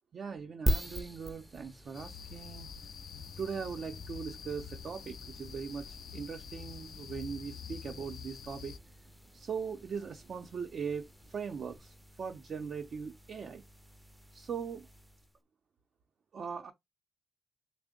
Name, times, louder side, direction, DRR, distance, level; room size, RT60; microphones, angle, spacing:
voice 1, 0.1-2.7 3.4-5.9 6.1-8.7 9.3-13.6 14.3-14.9 16.3-16.7, right 6 dB, 55° right, 0.6 m, -40 dB
sound 1, 0.7-15.4, equal, 5° right, 0.5 m, -42 dB
sound 2, 1.9-8.8, left 7 dB, 65° left, 0.3 m, -46 dB
3.5 x 2.0 x 3.7 m
cardioid pair, 100°, 0 cm